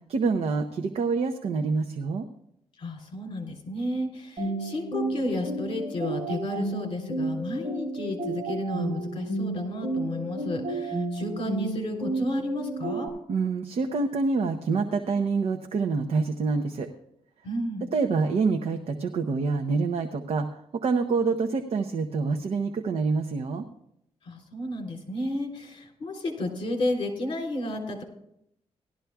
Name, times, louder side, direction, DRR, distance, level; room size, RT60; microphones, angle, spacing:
voice 1, 0.1-2.3 13.3-16.9 17.9-20.5 20.7-23.6, right 4 dB, 60° right, 5 dB, 0.7 m, -26 dB
voice 2, 2.8-13.1 17.4-17.9 24.2-28.0, left 1 dB, 50° left, 1 dB, 3.3 m, -32 dB
sound 1, 4.4-13.1, right 2 dB, 45° right, 4.7 m, -32 dB
17.5 x 12.5 x 2.3 m, 0.75 s
wide cardioid pair, 140°, 12 cm